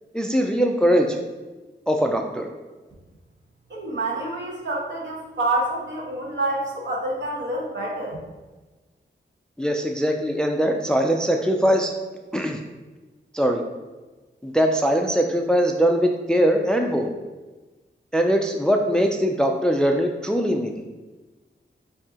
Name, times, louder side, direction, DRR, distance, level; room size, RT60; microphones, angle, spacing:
voice 1, 0.1-1.2 1.9-2.5 9.6-11.9 12.3-12.6 13.3-13.6 14.4-17.1 18.1-20.9, equal, 5° left, 3 dB, 0.3 m, -21 dB
voice 2, 3.7-8.2, right 2 dB, 70° right, -3 dB, 1.3 m, -27 dB
6.7 x 2.7 x 2.8 m, 1.2 s
wide cardioid pair, 130°, 19 cm